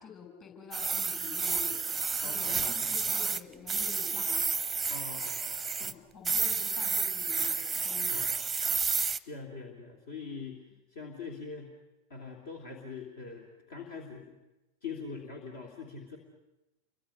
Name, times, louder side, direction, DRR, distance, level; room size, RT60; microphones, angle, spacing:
voice 1, 0.0-4.6 5.8-8.3, left 6 dB, 30° left, 4 dB, 6.9 m, -48 dB
sound 1, 0.7-3.4 3.7-5.9 6.2-9.2, right 5 dB, 10° right, 0.8 m, -31 dB
voice 2, 2.2-3.0 4.9-6.0 8.1-8.3 9.3-10.6 10.9-11.7 12.1-14.4 14.8-16.2, left 4 dB, 60° left, 1 dB, 2.8 m, -43 dB
29.0 x 24.0 x 6.6 m, 0.99 s
figure-of-eight pair, 90°, 0 cm